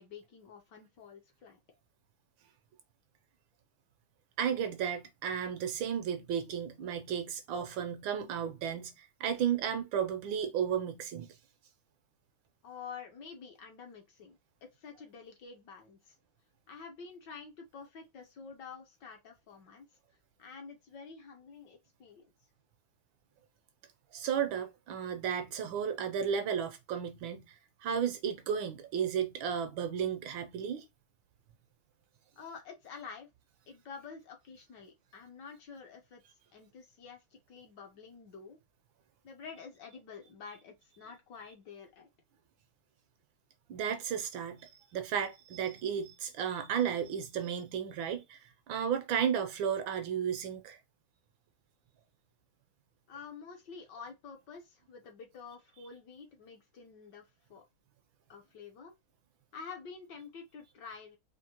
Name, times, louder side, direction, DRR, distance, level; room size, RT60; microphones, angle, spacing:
voice 1, 0.0-1.6 12.6-16.2 16.7-19.9 20.4-22.3 32.4-33.3 33.7-36.2 36.5-38.6 39.2-42.1 53.1-57.6 58.3-58.9 59.5-61.2, left 5 dB, 60° left, 1.4 m, -49 dB
voice 2, 4.4-11.3 24.1-30.8 43.7-50.8, right 8 dB, 75° right, 1.3 m, -34 dB
4.4 x 2.7 x 2.8 m
omnidirectional pair, 2.4 m